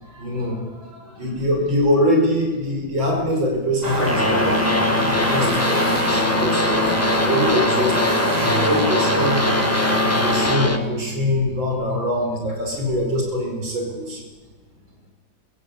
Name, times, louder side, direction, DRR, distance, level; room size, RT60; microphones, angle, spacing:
voice 1, 0.0-4.8 5.1-9.4 10.0-14.2, equal, 85° right, 1 dB, 5.9 m, -24 dB
sound 1, 3.8-10.5, right 1 dB, 20° right, 3.7 m, -24 dB
sound 2, 4.0-10.8, left 1 dB, 10° left, 1.0 m, -23 dB
Bowed string instrument, 4.1-12.4, left 3 dB, 75° left, 2.4 m, -28 dB
22.5 x 15.5 x 8.5 m, 1.3 s
omnidirectional pair, 2.1 m